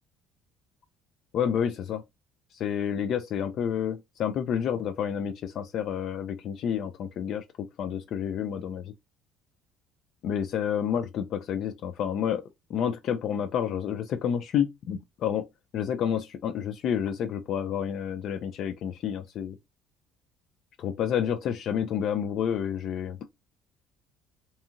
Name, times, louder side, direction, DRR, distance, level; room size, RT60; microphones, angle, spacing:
voice 1, 1.3-2.0 2.5-8.9 10.2-12.4 12.7-15.5 15.7-19.6 20.8-23.2, left 8 dB, 60° left, 0.3 m, -29 dB
2.6 x 2.4 x 2.7 m
cardioid pair, 105°, 0 cm